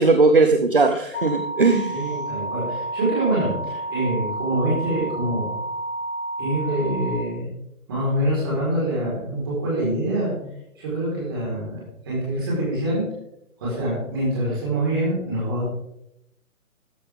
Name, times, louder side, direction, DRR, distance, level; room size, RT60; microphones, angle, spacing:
voice 1, 0.0-2.0, right 3 dB, 40° right, 7 dB, 0.7 m, -18 dB
sound 1, 1.1-7.2, right 1 dB, 75° left, 1.9 m, -30 dB
voice 2, 1.9-5.5 6.4-7.5 7.9-10.3 10.8-13.0 13.6-15.7, right 1 dB, 15° right, -6 dB, 4.3 m, -25 dB
14.0 x 11.5 x 3.6 m, 0.81 s
hypercardioid pair, 180°, 43 cm